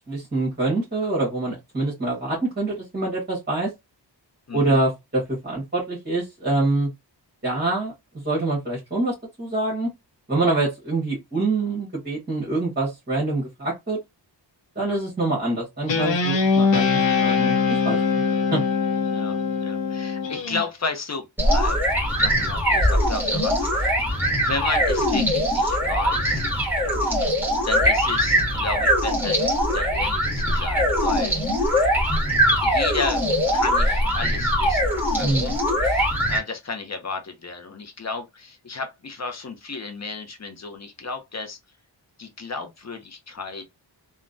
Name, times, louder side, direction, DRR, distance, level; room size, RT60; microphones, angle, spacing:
voice 1, 0.1-3.7 4.5-6.9 7.4-7.9 8.2-9.9 10.3-14.0 14.7-18.2 18.5-18.6 35.2-35.6, right 2 dB, 25° right, 1.4 m, -25 dB
voice 2, 4.5-4.8 14.8-15.0 19.1-21.3 21.5-21.8 22.0-24.0 24.3-26.5 27.0-27.4 27.6-29.4 29.7-31.4 31.8-31.9 32.6-33.3 33.5-35.6 35.8-41.6 42.2-43.7, left 4 dB, 40° left, 0.6 m, -33 dB
Guitar, 15.9-20.6, left 5 dB, 80° left, 0.7 m, -22 dB
sound 1, 21.4-36.4, equal, 5° right, 1.3 m, -22 dB
3.3 x 2.2 x 2.5 m
wide cardioid pair, 140°, 44 cm